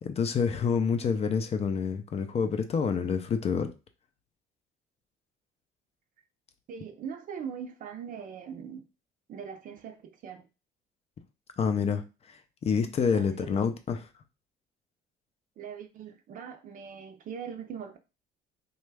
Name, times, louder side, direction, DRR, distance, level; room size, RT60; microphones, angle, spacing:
voice 1, 0.0-3.7 11.6-12.0 12.6-14.0, left 6 dB, 35° left, 0.5 m, -27 dB
voice 2, 6.7-8.8 9.3-10.5 13.1-13.6 15.6-18.0, right 7 dB, 55° right, 0.6 m, -41 dB
3.1 x 2.3 x 3.3 m
cardioid pair, 110°, 17 cm